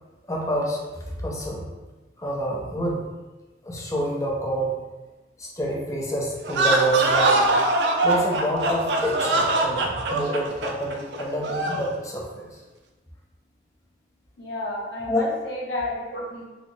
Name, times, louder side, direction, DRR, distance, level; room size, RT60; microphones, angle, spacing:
voice 1, 0.3-1.7 2.2-3.1 3.6-4.8 5.4-7.5 8.0-12.6 15.1-15.2, right 1 dB, 15° left, -2 dB, 0.5 m, -27 dB
sound 1, 6.4-11.9, right 2 dB, 70° right, 0.4 m, -23 dB
voice 2, 14.4-16.5, left 1 dB, 85° left, -4 dB, 0.9 m, -31 dB
3.9 x 2.0 x 3.1 m, 1.2 s
head